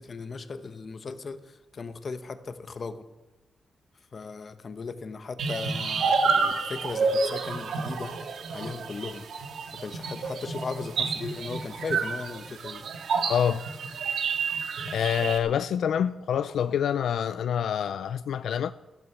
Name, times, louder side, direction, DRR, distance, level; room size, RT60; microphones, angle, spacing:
voice 1, 0.0-1.4 1.7-3.0 4.1-8.2 8.5-9.2 9.7-12.8, left 4 dB, 35° left, 1.0 m, -37 dB
sound 1, 5.4-15.4, right 4 dB, 75° right, 1.7 m, -29 dB
voice 2, 13.3-13.6 14.9-18.7, left 8 dB, 80° left, 0.4 m, -26 dB
14.0 x 14.0 x 6.0 m
wide cardioid pair, 165°, 0 cm